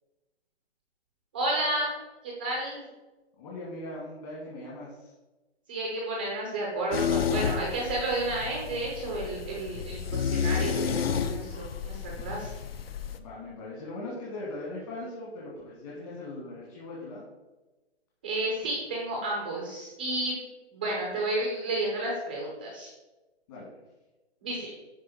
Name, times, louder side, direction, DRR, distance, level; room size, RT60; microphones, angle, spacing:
voice 1, 1.3-1.9 2.2-2.8 5.7-12.5 18.2-20.3 20.7-22.9 24.4-24.7, right 2 dB, 10° right, -2 dB, 0.5 m, -31 dB
voice 2, 3.4-5.1 13.2-17.2 23.5-23.8, left 2 dB, 35° left, -6 dB, 1.9 m, -40 dB
sound 1, 6.9-13.2, left 7 dB, 65° left, 0.7 m, -31 dB
11.0 x 3.8 x 4.1 m, 1.1 s
hypercardioid pair, 160°, 33 cm